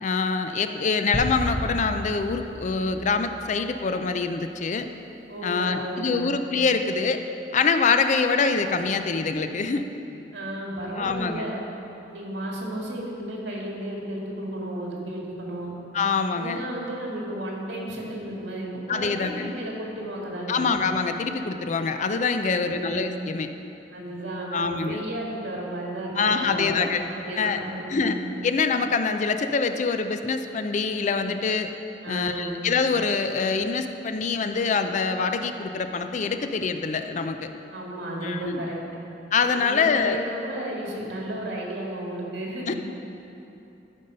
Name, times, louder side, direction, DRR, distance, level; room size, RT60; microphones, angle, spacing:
voice 1, 0.0-4.9 5.4-7.2 7.5-9.8 11.0-11.5 15.9-16.6 18.9-19.5 20.5-23.5 24.5-25.0 26.2-27.0 27.4-27.6 27.9-28.2 28.4-31.7 32.1-37.5 38.2-38.6 39.3-40.2 42.6-42.7, left 4 dB, 45° left, 8 dB, 0.4 m, -25 dB
sound 1, 1.1-3.6, equal, ahead, 0.7 m, -33 dB
voice 2, 5.3-6.3 10.3-11.6 12.1-15.7 16.3-20.7 22.4-23.0 23.9-26.9 27.2-28.0 32.0-32.5 37.7-38.8 39.5-42.7, right 1 dB, 75° right, -3 dB, 2.1 m, -33 dB
13.0 x 5.4 x 5.3 m, 2.9 s
head